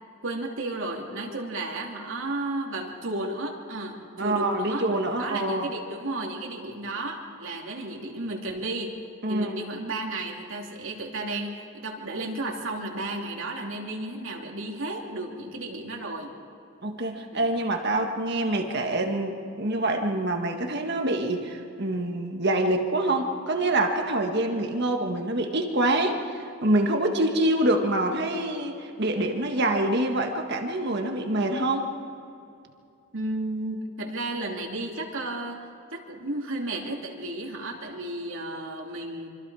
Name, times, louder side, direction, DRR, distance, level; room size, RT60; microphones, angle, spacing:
voice 1, 0.2-4.9 5.2-8.9 9.3-16.3 17.3-17.5 33.1-39.3, right 2 dB, 65° right, 0 dB, 3.0 m, -33 dB
voice 2, 4.2-5.7 9.2-9.5 16.8-31.9, right 1 dB, 50° right, 4 dB, 1.7 m, -26 dB
26.0 x 25.5 x 4.9 m, 2.6 s
head